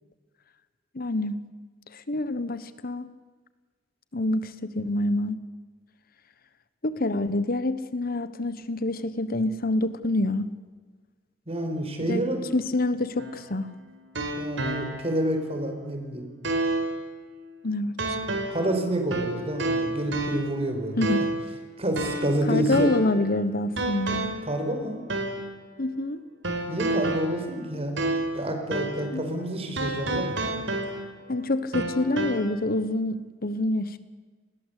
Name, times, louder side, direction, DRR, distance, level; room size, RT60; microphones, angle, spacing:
voice 1, 0.9-1.4 1.9-3.1 4.1-5.4 6.8-10.5 12.1-12.2 12.5-13.7 17.6-18.2 21.0-21.3 22.5-24.3 25.8-26.2 29.1-29.4 31.3-34.0, left 2 dB, 50° left, 13 dB, 1.2 m, -27 dB
voice 2, 11.5-12.4 14.4-16.2 18.5-21.2 21.8-22.9 24.5-25.0 26.7-28.0 28.3-30.4, right 1 dB, 35° right, 5 dB, 5.0 m, -28 dB
sound 1, 13.2-15.3 15.7-15.8 16.4-17.0 18.0-18.7 19.1-20.6 21.0-21.5 22.0-23.2 23.8-24.5 25.1-25.5 26.4-28.4 28.7-29.1 29.8-31.3 31.7-32.4, right 2 dB, 75° right, 4.6 m, -30 dB
29.5 x 20.5 x 8.4 m, 1.4 s
head